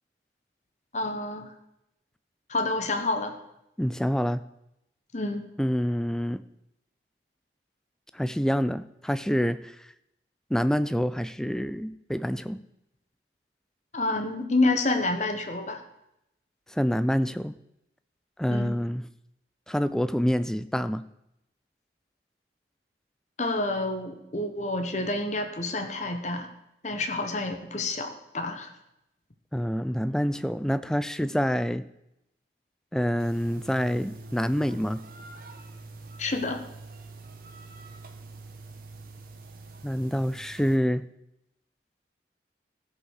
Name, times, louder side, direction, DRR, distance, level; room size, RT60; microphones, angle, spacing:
voice 1, 0.9-1.5 2.5-3.4 5.1-5.5 13.9-15.8 18.4-18.7 23.4-26.5 26.8-28.7 36.2-36.6, left 2 dB, 40° left, 5 dB, 1.0 m, -28 dB
voice 2, 3.8-4.4 5.6-6.4 8.1-9.8 10.5-12.6 16.7-17.6 18.4-19.0 19.7-21.0 29.5-31.9 32.9-35.0 39.8-41.0, equal, 5° left, 14 dB, 0.3 m, -27 dB
sound 1, 33.2-40.8, right 3 dB, 50° right, 1.3 m, -45 dB
14.5 x 5.4 x 6.5 m, 0.84 s
head